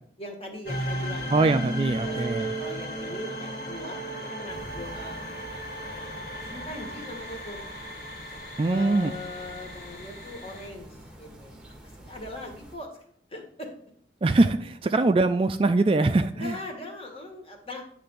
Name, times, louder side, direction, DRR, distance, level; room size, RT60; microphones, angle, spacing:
voice 1, 0.2-5.3 6.5-7.6 8.7-13.0 13.3-13.7 16.3-17.8, left 2 dB, 35° left, 1 dB, 1.6 m, -41 dB
sound 1, 0.6-10.7, right 1 dB, 70° left, 2.2 m, -35 dB
voice 2, 1.3-2.5 8.6-9.1 14.2-16.5, right 2 dB, 30° right, 9 dB, 0.3 m, -22 dB
sound 2, 4.5-12.8, right 1 dB, 5° right, 1.1 m, -47 dB
9.8 x 3.4 x 6.7 m, 0.64 s
head